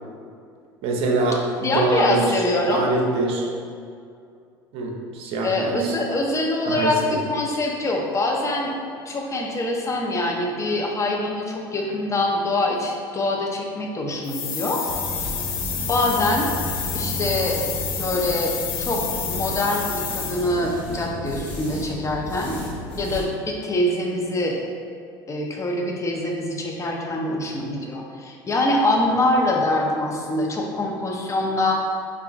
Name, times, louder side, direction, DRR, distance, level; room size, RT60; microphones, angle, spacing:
voice 1, 0.8-3.5 4.7-6.0 6.6-7.2, right 2 dB, 55° right, 0 dB, 0.6 m, -24 dB
voice 2, 1.6-2.8 5.4-8.7 9.1-14.8 15.9-16.6 16.9-17.6 18.0-19.0 19.3-22.6 23.0-24.6 25.3-31.7, left 1 dB, 25° left, 0 dB, 0.6 m, -24 dB
sound 1, 14.2-20.7, left 7 dB, 80° left, 0.4 m, -30 dB
sound 2, 14.9-23.3, equal, 45° left, 1.4 m, -33 dB
4.4 x 2.4 x 2.4 m, 2.4 s
hypercardioid pair, 70°, 12 cm